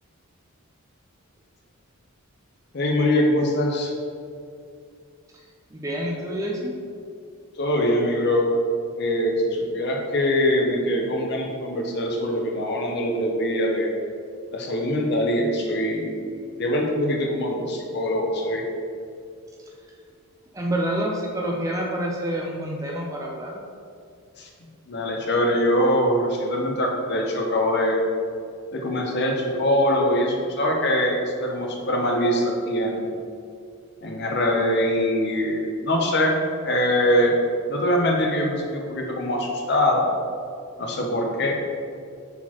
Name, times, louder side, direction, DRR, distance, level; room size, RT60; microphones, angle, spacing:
voice 1, 2.7-3.9 7.6-8.5 9.0-13.9 14.5-16.2 16.6-18.6 24.4-24.5 24.9-28.0 28.7-33.1 34.0-36.4 36.6-37.4 37.7-40.0 40.8-41.6, left 1 dB, 50° left, 0 dB, 0.6 m, -23 dB
voice 2, 5.7-6.7 19.6-19.7 20.5-23.6, right 1 dB, 15° right, -1 dB, 0.3 m, -28 dB
4.2 x 4.1 x 2.9 m, 2.4 s
head